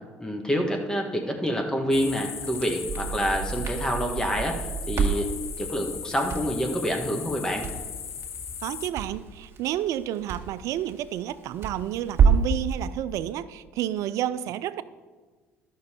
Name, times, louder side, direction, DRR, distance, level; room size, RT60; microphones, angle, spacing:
voice 1, 0.2-5.3 5.6-7.7, equal, 10° left, 2 dB, 1.5 m, -27 dB
sound 1, 1.9-8.9, left 7 dB, 50° left, 0.7 m, -37 dB
Crackle, 2.4-12.6, right 6 dB, 45° right, 1.9 m, -29 dB
voice 2, 8.6-14.8, right 12 dB, 65° right, 16 dB, 0.4 m, -30 dB
12.0 x 6.3 x 4.4 m, 1.4 s
hypercardioid pair, 60°, 6 cm